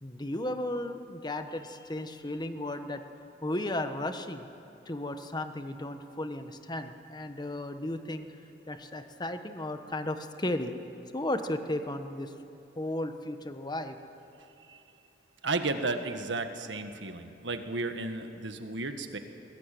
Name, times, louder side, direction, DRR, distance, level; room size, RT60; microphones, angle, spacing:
voice 1, 0.0-3.0 3.4-4.5 4.9-8.3 8.7-10.7 11.1-12.3 12.7-14.0, left 1 dB, 25° left, 8 dB, 1.2 m, -34 dB
voice 2, 15.4-19.2, right 3 dB, 75° right, 7 dB, 1.7 m, -33 dB
21.5 x 18.5 x 9.2 m, 2.9 s
head